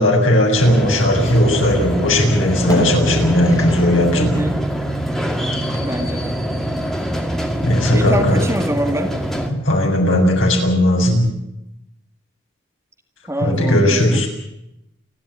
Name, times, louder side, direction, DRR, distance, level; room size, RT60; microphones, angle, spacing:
voice 1, 0.0-4.3 7.6-8.4 9.5-11.3 13.4-14.3, left 1 dB, 80° left, 1 dB, 7.2 m, -16 dB
sound 1, 0.6-9.5, right 1 dB, ahead, 2.2 m, -24 dB
sound 2, 2.7-4.1 4.3-4.4 5.7-6.4, left 1 dB, 20° left, 6.0 m, -30 dB
voice 2, 4.1-4.6 5.8-6.4 7.9-9.2 13.3-14.2, right 1 dB, 15° right, 5 dB, 2.0 m, -25 dB
29.5 x 11.5 x 9.9 m, 0.84 s
head